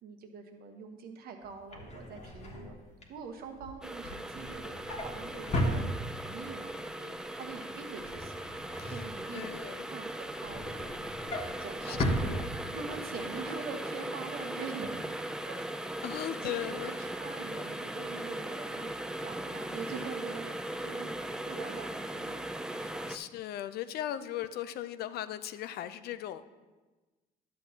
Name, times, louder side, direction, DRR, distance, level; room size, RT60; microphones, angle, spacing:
voice 1, 0.0-2.8 3.1-5.9 6.2-6.7 7.3-9.5 9.9-11.3 11.6-12.4 12.7-15.0 15.4-15.6 16.1-20.5 20.8-22.5 22.7-23.1, right 5 dB, 65° right, 4 dB, 1.0 m, -44 dB
Drawer open or close, 1.4-6.5 6.8-7.2 7.4-9.7 10.1-13.1 13.4-13.6 13.9-14.0, equal, 40° left, 1.3 m, -36 dB
sound 1, 3.8-23.2, right 1 dB, 5° right, 0.3 m, -39 dB
voice 2, 9.3-9.9 11.8-12.5 16.0-16.9 22.8-26.4, left 12 dB, 70° left, 12 dB, 0.5 m, -38 dB
11.0 x 7.6 x 2.8 m, 1.2 s
cardioid pair, 110°, 17 cm